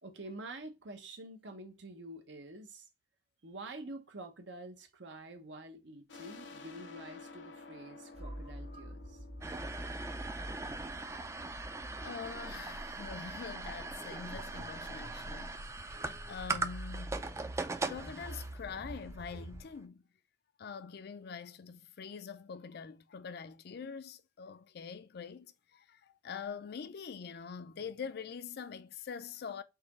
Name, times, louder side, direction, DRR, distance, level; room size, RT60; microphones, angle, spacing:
voice 1, 0.0-2.9 3.4-9.2, right 2 dB, 75° right, 0.9 m, -47 dB
sound 1, 6.1-11.4, left 3 dB, 80° left, 0.8 m, -53 dB
sound 2, 8.1-19.6, right 1 dB, 35° right, 0.8 m, -47 dB
sound 3, 9.4-19.8, right 3 dB, 15° right, 0.4 m, -41 dB
voice 2, 12.0-16.0 16.3-17.2 17.8-20.1 20.6-29.6, left 6 dB, 60° left, 0.4 m, -44 dB
4.1 x 2.9 x 3.6 m
head